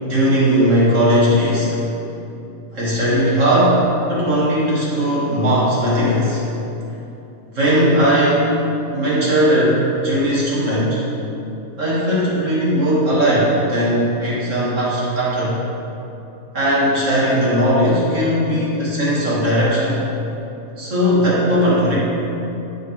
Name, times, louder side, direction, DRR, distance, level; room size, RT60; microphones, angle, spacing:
voice 1, 0.1-1.8 2.7-6.4 7.5-8.5 8.9-11.0 11.8-15.6 16.5-20.0 20.8-21.9, equal, 30° right, -8 dB, 1.6 m, -18 dB
16.0 x 5.7 x 3.4 m, 2.9 s
omnidirectional pair, 4.0 m